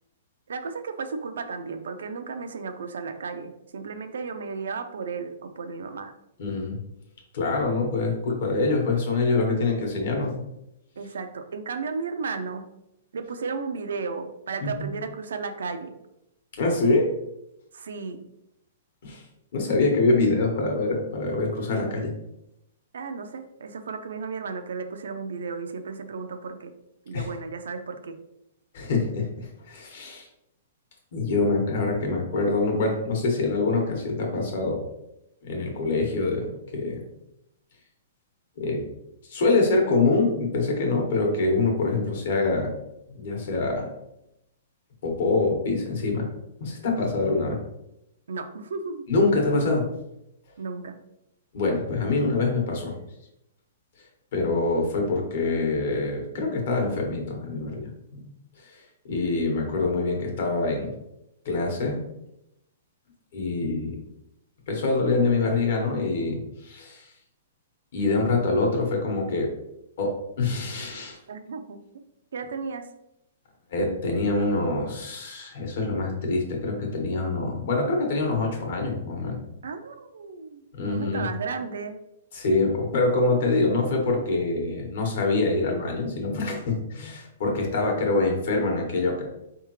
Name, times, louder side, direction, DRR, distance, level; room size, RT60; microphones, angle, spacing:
voice 1, 0.5-6.1 11.0-12.7 13.1-16.0 17.7-18.2 22.9-26.7 27.1-28.2 48.3-49.1 50.6-51.0 71.3-71.8 72.3-72.9 79.6-82.0, right 4 dB, 85° right, 7 dB, 0.5 m, -34 dB
voice 2, 6.4-6.8 7.3-10.3 14.6-14.9 16.6-17.1 19.0-19.2 19.5-22.1 27.1-27.3 28.7-30.3 31.1-34.8 35.4-37.0 38.6-38.8 39.2-42.7 43.1-43.9 45.0-46.3 46.6-47.6 49.1-49.9 51.5-53.0 54.3-57.9 58.6-60.9 61.4-62.0 63.3-64.0 64.7-67.1 67.9-69.5 70.0-71.2 73.7-79.4 80.7-81.3 82.3-89.3, left 3 dB, 60° left, 0 dB, 1.4 m, -25 dB
4.6 x 3.5 x 3.1 m, 0.85 s
hypercardioid pair, 155°, 0 cm